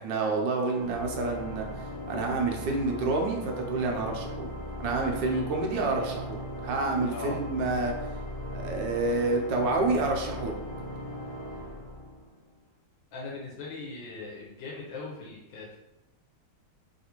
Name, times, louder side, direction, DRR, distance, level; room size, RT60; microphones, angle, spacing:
voice 1, 0.0-1.7 2.1-4.5 4.8-7.9 8.5-10.6, right 3 dB, 80° right, 1 dB, 1.3 m, -28 dB
Organ, 0.7-12.5, left 1 dB, 40° left, 0.5 m, -38 dB
voice 2, 5.2-5.7 7.1-7.4 13.1-15.8, left 3 dB, 80° left, -4 dB, 1.3 m, -40 dB
3.5 x 2.4 x 2.8 m, 0.97 s
omnidirectional pair, 2.0 m